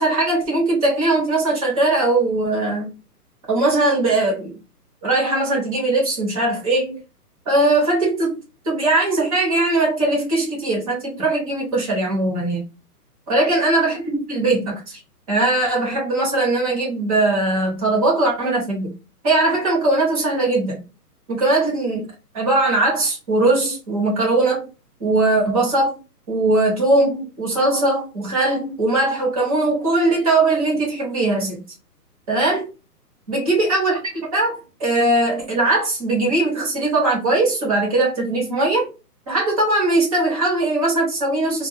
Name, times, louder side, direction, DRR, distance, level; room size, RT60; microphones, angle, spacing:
voice 1, 0.0-2.9 3.5-4.6 5.0-7.0 7.5-8.4 8.6-12.6 13.3-15.0 15.3-18.9 19.2-20.8 21.3-22.1 22.3-24.7 25.0-26.0 26.3-31.6 32.3-32.6 33.3-38.9 39.3-41.7, right 2 dB, 25° right, 0.9 m, -20 dB
2.2 x 2.1 x 3.2 m
hypercardioid pair, 160°, 48 cm